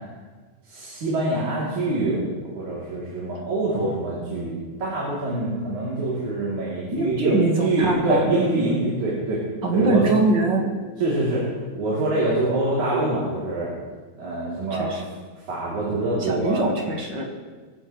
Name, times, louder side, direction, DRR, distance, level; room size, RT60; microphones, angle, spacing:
voice 1, 0.7-4.5 4.8-9.4 9.7-10.1 11.0-11.4 11.7-13.7 14.2-14.9 15.5-16.6, right 2 dB, 70° right, -7 dB, 4.5 m, -25 dB
voice 2, 6.9-8.3 9.6-10.7 14.7-15.0 16.2-17.3, right 2 dB, 40° right, 1 dB, 2.0 m, -23 dB
22.5 x 14.5 x 3.2 m, 1.4 s
omnidirectional pair, 3.6 m